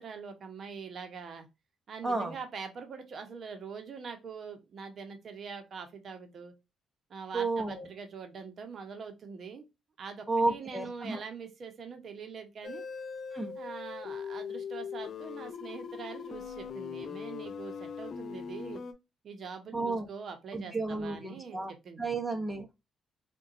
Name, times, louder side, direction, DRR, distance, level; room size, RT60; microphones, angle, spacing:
voice 1, 0.0-1.5 1.9-6.5 7.1-9.7 10.0-12.8 13.6-18.8 19.2-22.2, right 5 dB, 55° right, 0.7 m, -43 dB
voice 2, 2.0-2.3 7.3-7.9 10.3-11.2 13.3-13.5 19.7-20.1 20.5-21.7 22.0-22.7, right 3 dB, 10° right, 0.6 m, -32 dB
sound 1, 12.6-18.9, left 6 dB, 55° left, 0.3 m, -40 dB
3.7 x 2.2 x 2.4 m
cardioid pair, 90°, 0 cm